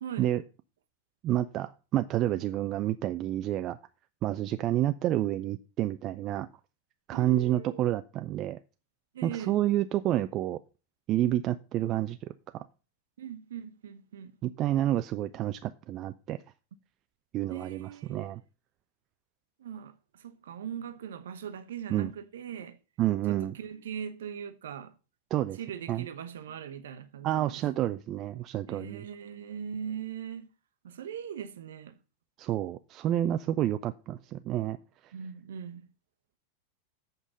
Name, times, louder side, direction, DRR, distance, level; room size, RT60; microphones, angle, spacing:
voice 1, 1.2-3.8 4.2-6.5 7.1-8.6 9.2-10.6 11.1-12.6 14.4-16.4 17.3-18.4 21.9-22.1 23.0-23.5 25.3-25.6 25.9-26.0 27.2-29.0 32.4-34.8, right 13 dB, 35° right, 0.4 m, -29 dB
voice 2, 7.1-7.8 9.1-9.6 13.2-14.4 17.5-18.3 19.6-22.8 23.3-24.9 25.5-27.9 28.7-30.5 30.8-32.0 35.1-35.9, right 8 dB, 60° right, 0.9 m, -40 dB
8.2 x 5.3 x 7.2 m
figure-of-eight pair, 90°, 0 cm